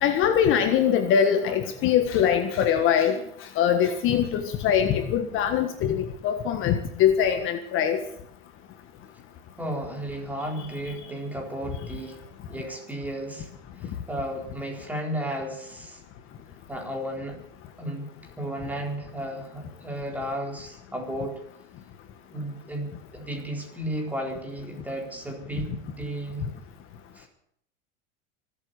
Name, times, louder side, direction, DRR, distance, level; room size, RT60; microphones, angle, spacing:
voice 1, 0.0-3.2 3.6-8.0, left 8 dB, 45° left, 7 dB, 1.6 m, -22 dB
voice 2, 9.6-12.2 12.5-13.5 13.8-16.0 16.7-17.4 17.8-21.4 22.3-26.5 27.1-27.3, right 1 dB, 5° right, 1 dB, 3.9 m, -34 dB
25.0 x 8.5 x 6.7 m, 0.68 s
supercardioid pair, 130°, 29 cm